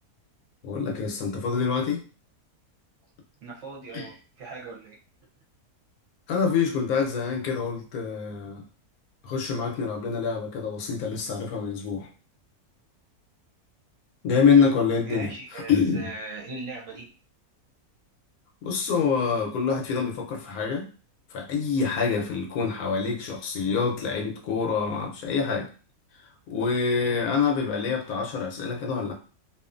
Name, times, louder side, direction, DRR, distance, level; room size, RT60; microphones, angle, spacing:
voice 1, 0.6-2.0 3.9-4.1 6.3-8.6 9.2-12.1 14.2-16.1 18.6-20.9 21.3-25.7 26.5-29.1, left 5 dB, 75° left, 1 dB, 1.1 m, -26 dB
voice 2, 3.4-5.0 15.0-17.1, right 3 dB, 60° right, -2 dB, 0.9 m, -39 dB
2.7 x 2.4 x 2.4 m, 0.38 s
omnidirectional pair, 1.6 m